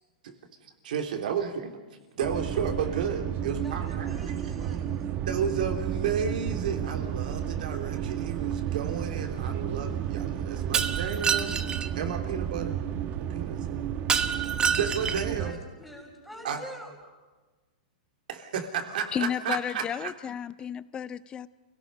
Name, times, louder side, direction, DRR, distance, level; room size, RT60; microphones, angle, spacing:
voice 1, 0.8-1.7 2.1-4.3 5.3-11.6 11.9-12.8 13.3-13.9 14.8-15.6 16.4-16.6 18.3-20.1, right 7 dB, 70° right, 3.0 m, -32 dB
sound 1, 2.2-15.5, right 9 dB, 35° right, 1.3 m, -32 dB
voice 2, 3.6-5.0 15.3-16.9, equal, ahead, 5.9 m, -45 dB
Shatter, 10.7-11.9 14.1-15.4, right 7 dB, 15° right, 1.0 m, -27 dB
voice 3, 19.1-21.5, left 8 dB, 20° left, 0.6 m, -32 dB
30.0 x 17.5 x 5.5 m
hypercardioid pair, 140°, 5 cm